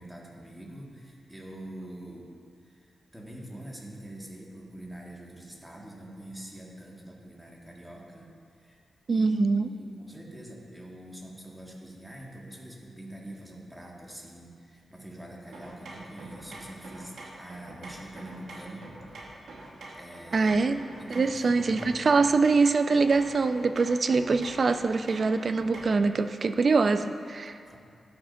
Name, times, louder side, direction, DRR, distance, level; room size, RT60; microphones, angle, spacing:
voice 1, 0.0-2.3 2.6-8.3 8.6-8.8 9.1-18.9 19.6-20.5 21.0-22.2 27.6-27.8, right 1 dB, 5° right, -3 dB, 1.7 m, -44 dB
voice 2, 9.1-9.7 20.3-20.8 21.1-27.6, right 4 dB, 55° right, 10 dB, 0.4 m, -24 dB
sound 1, 15.5-26.1, right 2 dB, 80° right, 1.2 m, -45 dB
13.5 x 6.1 x 2.6 m, 2.3 s
cardioid pair, 55°, 0 cm